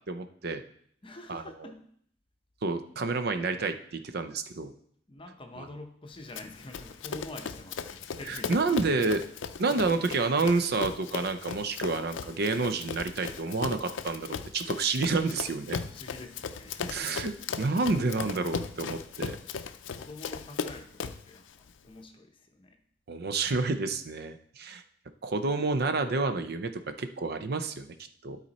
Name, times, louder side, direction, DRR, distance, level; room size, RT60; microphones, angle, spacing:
voice 1, 0.1-0.6 1.3-1.4 2.6-4.7 8.3-9.2 9.6-15.8 16.9-17.3 17.6-19.4 23.1-24.8 25.2-26.7 27.0-27.9 28.2-28.4, right 3 dB, 55° right, 9 dB, 0.5 m, -29 dB
voice 2, 1.0-1.9 5.1-9.0 9.7-9.9 15.8-17.4 19.4-19.6 19.9-22.8, left 2 dB, 30° left, 5 dB, 0.8 m, -46 dB
Run, 6.4-21.3, left 5 dB, 85° left, 0.5 m, -37 dB
12.5 x 4.2 x 4.1 m, 0.65 s
head